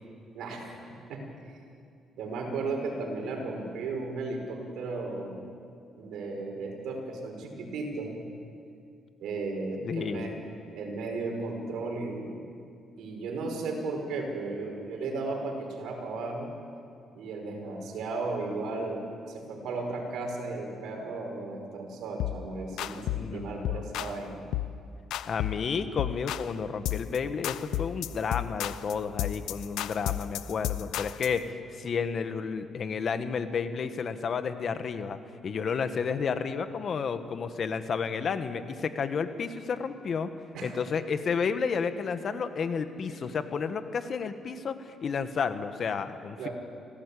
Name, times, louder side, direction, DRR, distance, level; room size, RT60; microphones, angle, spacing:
voice 1, 0.3-0.8 1.1-1.6 2.2-5.4 6.0-8.2 9.2-10.4 10.7-12.4 13.0-16.5 17.1-24.5 40.5-40.8 42.3-42.4 43.0-43.4 46.4-46.5, right 3 dB, 80° right, 2 dB, 5.2 m, -35 dB
voice 2, 9.8-10.3 23.1-23.8 25.3-35.2 35.4-40.3 40.6-46.5, left 6 dB, 55° left, 9 dB, 1.5 m, -31 dB
sound 1, 22.2-22.4 22.8-23.3 23.6-24.2 24.5-24.8 25.1-25.7 26.0-26.5 26.9-27.2 27.4-31.4, left 13 dB, 85° left, 0.6 m, -32 dB
25.5 x 17.5 x 8.6 m, 2.4 s
cardioid pair, 90°, 0 cm